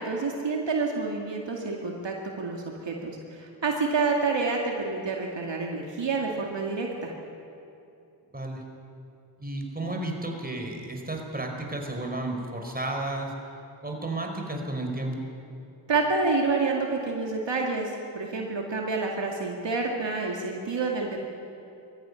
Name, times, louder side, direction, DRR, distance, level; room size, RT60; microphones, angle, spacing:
voice 1, 0.0-7.1 15.9-21.2, right 3 dB, 65° right, 0 dB, 2.4 m, -28 dB
voice 2, 9.4-13.3 13.8-15.1, right 2 dB, 20° right, 2 dB, 4.9 m, -32 dB
20.5 x 14.5 x 9.8 m, 2.7 s
cardioid pair, 45°, 47 cm